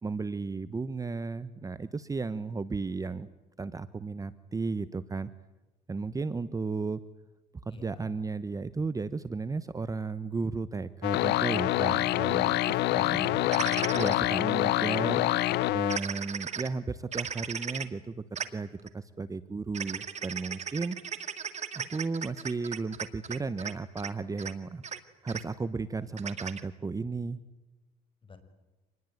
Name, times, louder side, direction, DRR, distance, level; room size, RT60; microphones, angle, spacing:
voice 1, 0.0-3.3 3.6-5.3 5.9-7.0 7.6-13.4 13.9-15.3 15.7-18.7 18.9-21.0 21.7-24.8 25.2-27.4, right 4 dB, 20° right, 15 dB, 1.0 m, -34 dB
voice 2, 7.7-8.1 12.9-13.8 28.3-28.4, left 4 dB, 30° left, 8 dB, 5.8 m, -45 dB
sound 1, 11.0-16.0, left 16 dB, 80° left, 0.8 m, -26 dB
sound 2, 13.5-14.2 15.9-16.7 17.1-17.9 18.4-18.5 18.8-18.9 19.7-23.7 24.0-24.1 24.4-24.5 24.8-25.0 25.3-25.4 26.2-26.6, right 7 dB, 40° right, 2.2 m, -36 dB
27.0 x 20.5 x 9.3 m, 1.1 s
cardioid pair, 110°, 17 cm